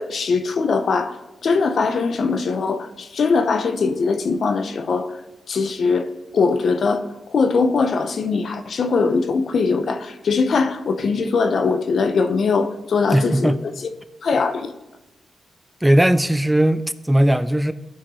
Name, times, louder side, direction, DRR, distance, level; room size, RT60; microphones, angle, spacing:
voice 1, 0.0-5.2 5.5-6.1 6.3-13.5 14.2-14.7, left 4 dB, 65° left, 0.8 m, -21 dB
voice 2, 13.1-13.6 15.8-17.7, right 1 dB, 10° right, 0.5 m, -18 dB
15.0 x 5.8 x 3.1 m
cardioid pair, 60°, 0 cm